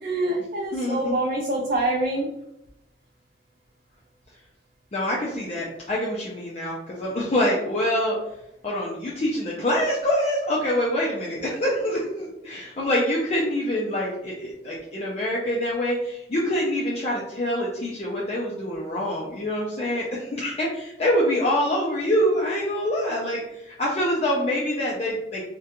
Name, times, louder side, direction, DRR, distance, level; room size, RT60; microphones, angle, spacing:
voice 1, 0.0-2.3, right 2 dB, 50° right, -1 dB, 0.4 m, -25 dB
voice 2, 0.7-1.2 4.9-8.2 8.6-25.4, equal, 35° left, -5 dB, 0.4 m, -25 dB
2.4 x 2.2 x 2.8 m, 0.83 s
head